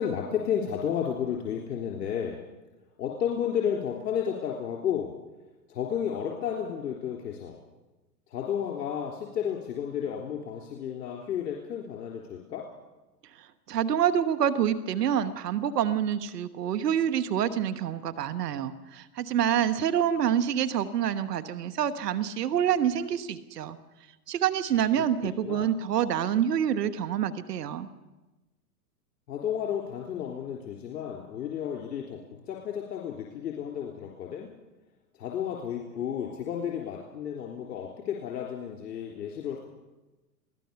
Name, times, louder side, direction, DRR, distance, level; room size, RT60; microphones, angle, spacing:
voice 1, 0.0-2.4 3.0-5.1 5.7-7.6 8.3-12.7 25.4-25.7 29.3-34.5 35.1-39.6, left 8 dB, 70° left, 0 dB, 3.7 m, -32 dB
voice 2, 13.4-23.8 24.3-27.9, right 9 dB, 70° right, 12 dB, 1.4 m, -27 dB
23.0 x 17.0 x 7.0 m, 1.1 s
hypercardioid pair, 115°, 49 cm